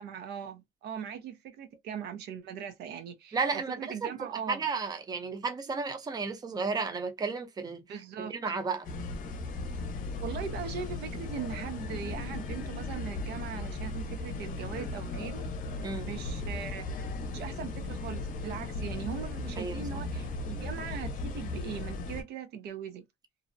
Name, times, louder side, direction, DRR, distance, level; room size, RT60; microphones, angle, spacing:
voice 1, 0.0-4.6 7.9-8.3 10.2-15.4 16.0-16.9 17.3-23.0, right 7 dB, 75° right, 0.5 m, -40 dB
voice 2, 3.3-4.1 4.5-8.9 15.8-16.1 19.6-20.0, right 4 dB, 25° right, 0.6 m, -33 dB
sound 1, 8.8-22.2, left 2 dB, 55° left, 0.6 m, -37 dB
2.5 x 2.0 x 2.5 m
cardioid pair, 110°, 17 cm